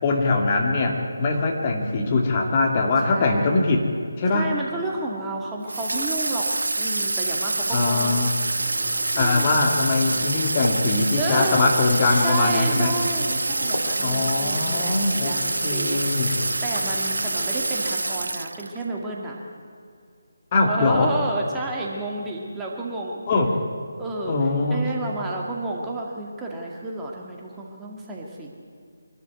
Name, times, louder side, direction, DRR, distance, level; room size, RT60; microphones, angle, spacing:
voice 1, 0.0-3.9 4.2-4.5 7.7-8.3 9.1-12.9 14.0-15.4 15.6-16.3 20.5-21.2 23.3-23.6 24.3-24.9, left 3 dB, 30° left, 1 dB, 2.5 m, -22 dB
voice 2, 3.1-3.8 4.3-6.5 6.8-8.3 9.1-9.6 11.2-11.7 12.2-19.4 20.6-23.2 24.0-24.4 24.7-28.5, right 2 dB, 10° right, -2 dB, 2.2 m, -31 dB
Water tap faucet / Sink (filling or washing), 5.7-18.8, right 2 dB, 70° right, 0.4 m, -26 dB
sound 1, 8.6-18.0, right 2 dB, 30° right, 4.4 m, -38 dB
sound 2, 9.0-12.7 13.2-14.9 15.3-16.3, left 1 dB, 85° left, 2.7 m, -38 dB
25.0 x 12.5 x 9.5 m, 2.4 s
figure-of-eight pair, 155°, 0 cm